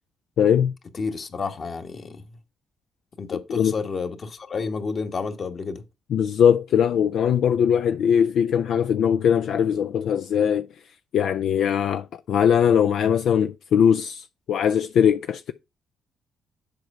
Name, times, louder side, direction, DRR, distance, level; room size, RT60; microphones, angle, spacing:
voice 1, 0.4-0.7 3.5-3.7 6.1-10.7 11.1-15.5, left 8 dB, 70° left, 0.4 m, -20 dB
voice 2, 0.9-2.2 3.2-5.8, left 4 dB, 45° left, 1.4 m, -30 dB
7.8 x 4.6 x 5.4 m
cardioid pair, 90°, 0 cm